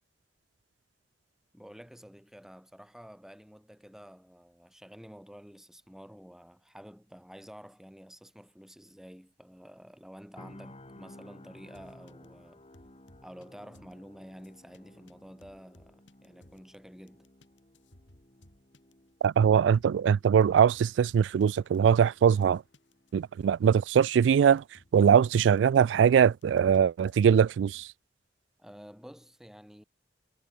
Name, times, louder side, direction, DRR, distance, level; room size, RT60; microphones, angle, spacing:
voice 1, 1.5-12.6 13.2-17.3 28.6-29.8, equal, 5° right, 2.1 m, -50 dB
sound 1, 10.4-24.4 24.7-24.9, left 1 dB, 35° left, 3.4 m, -56 dB
sound 2, 11.7-12.2 12.7-13.5 13.7-14.0 14.4-14.8 15.1-15.2 15.4-16.7 17.1-23.8 24.1-24.2 24.6-26.8 27.1-27.3 27.7-27.9, left 1 dB, 85° left, 5.8 m, -60 dB
voice 2, 19.2-22.6 23.1-24.6 24.9-27.9, right 7 dB, 75° right, 0.3 m, -22 dB
head